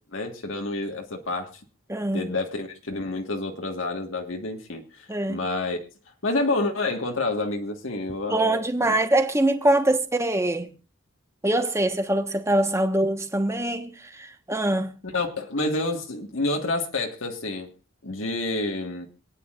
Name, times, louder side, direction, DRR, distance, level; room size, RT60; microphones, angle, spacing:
voice 1, 0.1-1.6 2.1-5.8 6.2-8.9 15.1-17.7 18.0-19.1, left 2 dB, 80° left, 1.6 m, -29 dB
voice 2, 1.9-2.2 5.1-5.4 8.3-10.7 11.4-14.9, right 1 dB, 15° right, 1.2 m, -23 dB
26.5 x 9.4 x 2.5 m
head